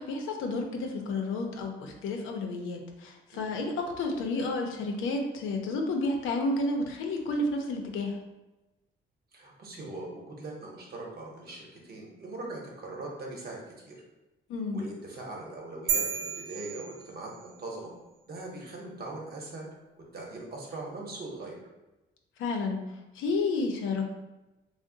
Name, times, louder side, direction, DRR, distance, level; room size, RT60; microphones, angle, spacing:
voice 1, 0.0-8.2 14.5-14.8 22.4-22.8 23.1-24.0, left 2 dB, 85° left, 3 dB, 0.5 m, -31 dB
voice 2, 9.3-14.0 14.7-17.9 18.3-19.7 20.1-21.6, right 2 dB, 50° right, -1 dB, 0.9 m, -41 dB
sound 1, 15.9-17.6, right 7 dB, 75° right, 0.5 m, -32 dB
2.6 x 2.0 x 3.8 m, 1.0 s
cardioid pair, 90°, 20 cm